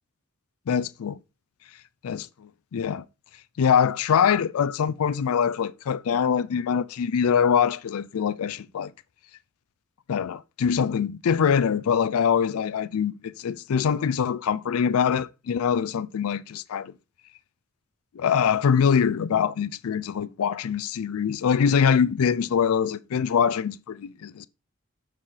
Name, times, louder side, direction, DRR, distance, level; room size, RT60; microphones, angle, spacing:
voice 1, 0.7-1.2 2.0-3.0 3.6-8.9 10.1-16.9 18.1-24.5, left 7 dB, 85° left, 0.4 m, -24 dB
6.4 x 4.4 x 3.7 m
head